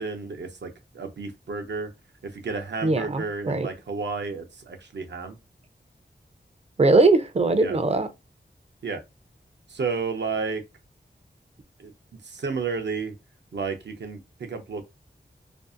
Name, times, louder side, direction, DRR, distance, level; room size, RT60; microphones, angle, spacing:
voice 1, 0.0-1.9 2.2-5.4 7.6-7.8 8.8-9.0 9.7-10.6 11.8-11.9 12.2-13.1 13.5-14.9, right 4 dB, 80° right, 0.6 m, -31 dB
voice 2, 2.8-3.7 6.8-8.1, right 3 dB, 35° right, 0.4 m, -20 dB
2.6 x 2.4 x 2.4 m
wide cardioid pair, 75°, 18 cm